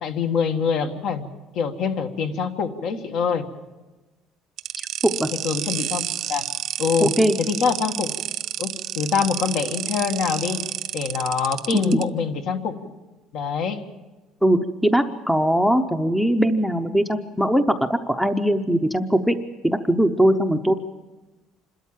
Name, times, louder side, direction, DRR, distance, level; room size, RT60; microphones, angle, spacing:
voice 1, 0.0-1.3 1.5-3.5 5.4-6.5 6.8-7.1 7.4-8.1 8.6-10.7 10.9-12.9 13.3-13.9, left 6 dB, 60° left, 6 dB, 1.7 m, -25 dB
sound 1, 4.6-12.0, right 11 dB, 50° right, 0.6 m, -30 dB
voice 2, 4.8-5.3 7.0-7.4 11.7-12.0 14.4-19.4 19.6-20.7, equal, ahead, 9 dB, 0.7 m, -20 dB
27.0 x 13.0 x 7.4 m, 1.1 s
cardioid pair, 155°, 0 cm